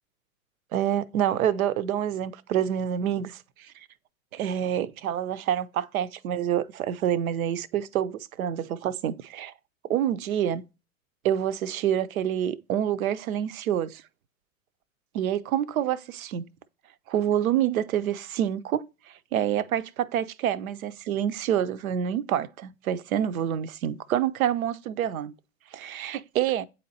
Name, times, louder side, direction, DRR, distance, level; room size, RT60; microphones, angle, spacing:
voice 1, 0.7-3.7 4.3-9.5 9.9-10.6 11.2-14.0 15.1-16.4 17.1-18.9 19.3-25.3 25.7-26.7, right 10 dB, 80° right, 0.6 m, -27 dB
8.4 x 4.2 x 2.7 m
hypercardioid pair, 110°, 42 cm